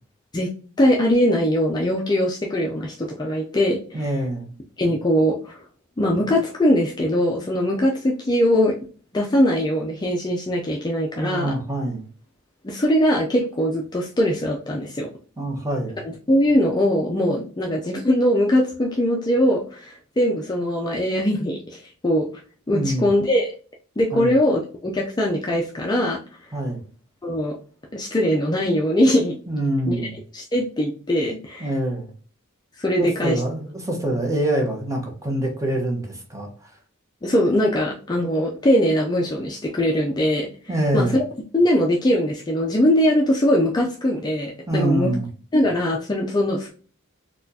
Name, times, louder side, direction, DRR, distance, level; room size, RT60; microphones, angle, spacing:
voice 1, 0.8-4.0 4.8-5.6 6.0-8.7 9.1-11.5 12.6-15.1 16.0-22.3 22.7-23.5 24.0-26.2 27.2-27.5 27.9-29.4 29.9-30.1 30.3-31.7 32.8-33.4 37.2-40.5 40.9-41.1 41.5-45.1 45.5-46.7, equal, 20° left, -1 dB, 0.4 m, -21 dB
voice 2, 3.9-4.5 11.1-12.0 15.4-16.0 22.7-23.1 24.1-24.3 26.5-26.8 29.5-30.2 31.6-32.1 33.0-36.5 40.7-41.2 44.7-45.3, right 1 dB, 15° right, 1 dB, 0.8 m, -25 dB
4.2 x 2.3 x 2.7 m, 0.41 s
head